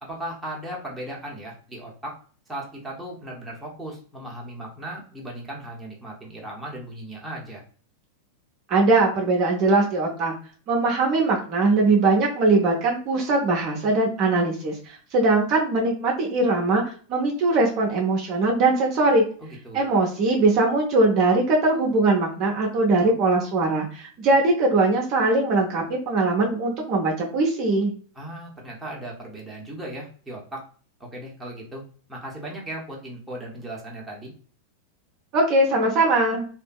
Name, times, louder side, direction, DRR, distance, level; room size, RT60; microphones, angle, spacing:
voice 1, 0.0-2.1 2.5-7.6 19.4-19.9 28.1-30.6 31.0-31.8 32.1-34.3, right 1 dB, 10° right, -3 dB, 0.8 m, -37 dB
voice 2, 8.7-10.3 10.7-16.8 17.1-19.2 19.7-27.9 35.3-36.5, right 2 dB, 40° right, -1 dB, 0.6 m, -21 dB
2.6 x 2.5 x 2.2 m, 0.43 s
figure-of-eight pair, 90°, 0 cm